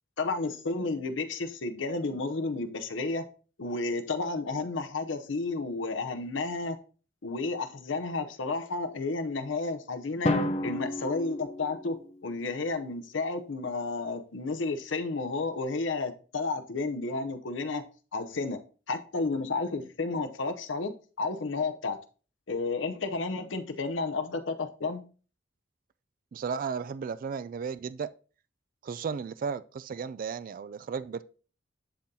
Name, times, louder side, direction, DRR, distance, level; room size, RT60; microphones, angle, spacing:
voice 1, 0.2-3.2 3.6-6.8 7.2-10.4 10.6-17.8 18.1-18.6 18.9-22.0 22.5-25.0, left 3 dB, 80° left, 0.8 m, -32 dB
Drum, 10.2-12.3, left 1 dB, 35° left, 0.7 m, -31 dB
voice 2, 26.3-28.1 28.8-31.2, right 6 dB, 45° right, 0.3 m, -34 dB
11.5 x 3.8 x 2.8 m
head